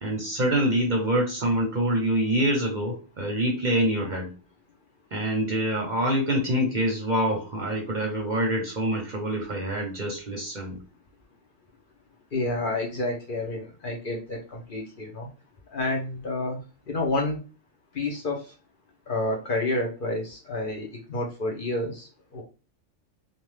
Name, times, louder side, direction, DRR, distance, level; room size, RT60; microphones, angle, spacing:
voice 1, 0.0-4.3 5.1-10.8, right 1 dB, 45° right, 0 dB, 0.7 m, -26 dB
voice 2, 12.3-15.3 15.7-16.6 16.9-17.4 17.9-18.4 19.1-22.1 22.3-22.4, left 2 dB, 50° left, 1 dB, 0.8 m, -29 dB
2.8 x 2.2 x 3.2 m, 0.33 s
omnidirectional pair, 1.3 m